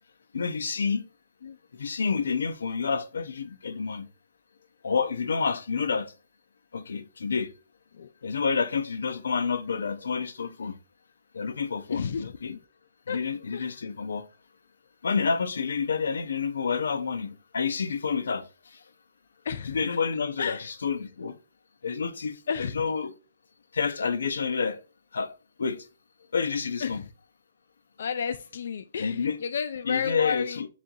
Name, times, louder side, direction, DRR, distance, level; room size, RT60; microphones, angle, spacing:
voice 1, 0.3-1.0 1.8-4.1 4.8-6.1 6.7-7.5 8.2-10.7 11.3-12.5 13.1-14.2 15.0-18.5 19.7-21.4 21.8-23.1 23.7-24.8 25.1-25.3 25.6-25.8 26.3-27.0 29.0-29.4 29.9-30.7, left 5 dB, 90° left, 0.7 m, -29 dB
voice 2, 11.9-12.6 13.1-13.2 13.5-13.8 19.4-19.8 20.4-20.7 22.5-22.7 26.8-27.1 28.0-30.7, left 6 dB, 55° left, 0.3 m, -32 dB
7.2 x 2.5 x 2.7 m
hypercardioid pair, 175°, 0 cm